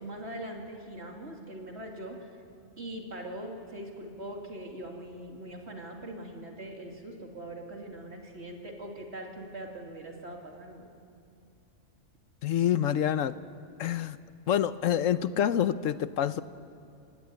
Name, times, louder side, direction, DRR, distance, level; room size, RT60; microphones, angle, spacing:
voice 1, 0.0-2.3 2.8-10.9, right 1 dB, 55° right, 1 dB, 3.0 m, -41 dB
voice 2, 12.4-13.4 13.8-14.2 14.5-16.4, left 10 dB, 85° left, 14 dB, 1.1 m, -27 dB
27.5 x 17.0 x 9.7 m, 2.5 s
omnidirectional pair, 1.3 m